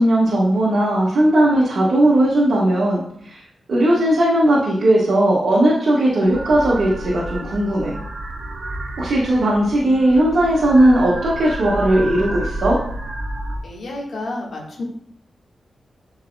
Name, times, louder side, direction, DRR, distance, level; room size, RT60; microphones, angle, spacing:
voice 1, 0.0-3.4 3.7-7.9 9.0-12.8, right 1 dB, 65° right, -7 dB, 1.5 m, -17 dB
sound 1, 6.3-13.6, right 1 dB, 50° right, 1.1 m, -30 dB
voice 2, 13.6-14.8, left 2 dB, 60° left, -3 dB, 1.7 m, -30 dB
11.0 x 4.7 x 2.3 m, 0.68 s
wide cardioid pair, 170°, 0 cm